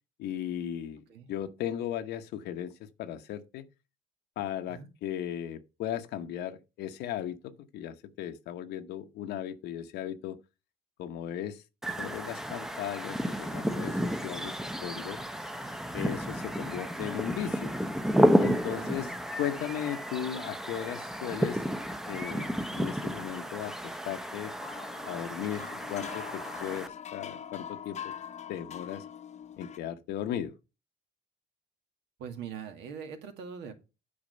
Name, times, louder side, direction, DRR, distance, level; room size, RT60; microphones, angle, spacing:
voice 1, 0.2-1.0 1.3-3.6 4.4-10.4 11.0-11.6 12.0-15.2 15.9-17.7 18.4-19.1 19.4-21.6 22.1-24.6 25.0-28.1 28.5-29.0 29.6-30.5, left 10 dB, 80° left, 0.9 m, -36 dB
sound 1, 11.8-26.9, equal, ahead, 0.7 m, -31 dB
voice 2, 18.7-19.1 32.2-33.7, right 7 dB, 85° right, 1.8 m, -42 dB
sound 2, 24.6-29.8, left 8 dB, 45° left, 0.8 m, -43 dB
8.7 x 4.8 x 5.3 m
cardioid pair, 110°, 17 cm